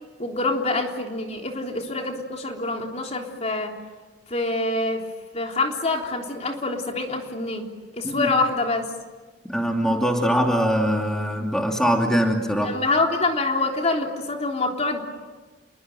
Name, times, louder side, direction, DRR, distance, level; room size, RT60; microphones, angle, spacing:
voice 1, 0.2-3.7 4.3-5.0 5.3-7.7 7.9-8.9 12.6-15.0, left 2 dB, 40° left, 2 dB, 3.6 m, -25 dB
voice 2, 9.5-12.8, equal, 5° left, 1 dB, 2.6 m, -22 dB
28.5 x 22.5 x 9.1 m, 1.3 s
head